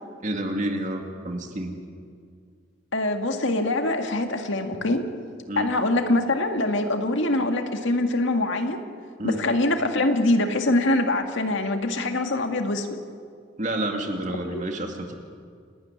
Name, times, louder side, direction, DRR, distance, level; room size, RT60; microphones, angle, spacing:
voice 1, 0.2-1.8 5.5-5.7 9.2-9.4 13.6-15.1, right 1 dB, 40° right, 3 dB, 2.4 m, -29 dB
voice 2, 2.9-5.0 5.6-8.8 9.2-13.0 14.5-14.6, left 2 dB, 65° left, 5 dB, 1.9 m, -24 dB
28.5 x 12.5 x 9.9 m, 2.2 s
head